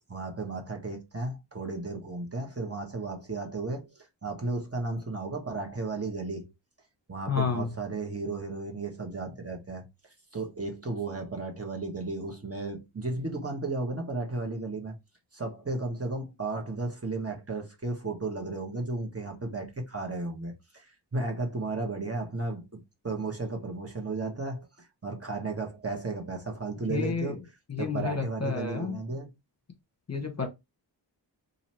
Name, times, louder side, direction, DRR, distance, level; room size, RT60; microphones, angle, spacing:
voice 1, 0.0-6.5 7.1-15.0 15.3-27.4 27.8-29.3, right 3 dB, 30° right, 1.3 m, -34 dB
voice 2, 7.3-7.7 26.9-27.4 27.7-29.0 30.1-30.5, left 5 dB, 35° left, 1.2 m, -30 dB
2.9 x 2.7 x 4.3 m
wide cardioid pair, 55°, 44 cm